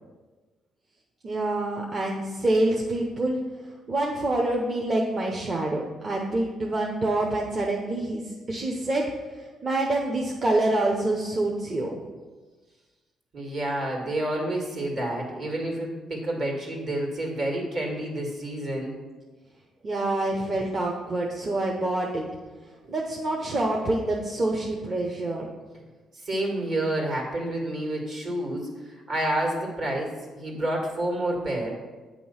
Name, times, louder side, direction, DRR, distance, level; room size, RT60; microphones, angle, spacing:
voice 1, 1.2-3.4 3.9-8.2 8.5-9.1 9.6-12.0 19.8-22.2 22.9-25.5, right 2 dB, 35° right, -1 dB, 0.8 m, -26 dB
voice 2, 13.3-19.0 20.5-20.6 26.1-31.7, right 1 dB, 60° right, 0 dB, 1.9 m, -29 dB
8.7 x 3.0 x 5.6 m, 1.3 s
cardioid pair, 90°, 0 cm